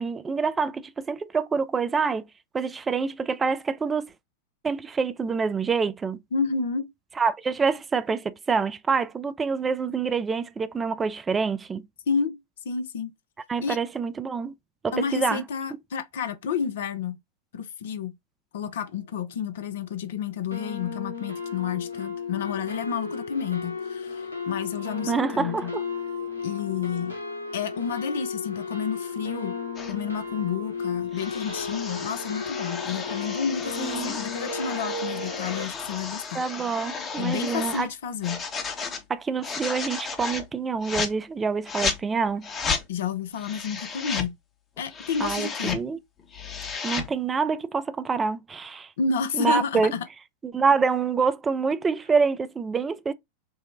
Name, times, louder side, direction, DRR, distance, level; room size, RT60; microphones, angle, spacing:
voice 1, 0.0-2.2 2.5-4.1 4.6-6.2 7.2-11.8 13.5-14.5 14.8-15.4 25.1-25.8 33.8-34.2 36.3-37.9 39.1-42.5 45.2-46.0 46.8-48.9 49.3-49.9 50.4-53.1, right 5 dB, 15° right, 0.4 m, -26 dB
voice 2, 6.3-6.9 12.1-12.4 12.6-13.1 13.6-13.8 14.9-17.2 17.5-18.1 18.5-25.7 26.4-27.1 27.5-29.5 29.9-36.4 37.2-38.4 42.9-44.3 44.8-45.8 49.0-50.0, left 6 dB, 60° left, 0.4 m, -30 dB
sound 1, 19.3-19.4 19.6-20.0 20.5-35.6, left 4 dB, 85° left, 0.8 m, -34 dB
sound 2, 29.8-30.0 31.1-37.9 38.2-39.0 39.4-40.5 40.8-41.1 41.7-42.0 42.4-42.8 43.4-44.3 44.8-45.8 46.2-47.1, left 5 dB, 25° left, 0.8 m, -33 dB
4.7 x 2.0 x 2.5 m
figure-of-eight pair, 90°, 0 cm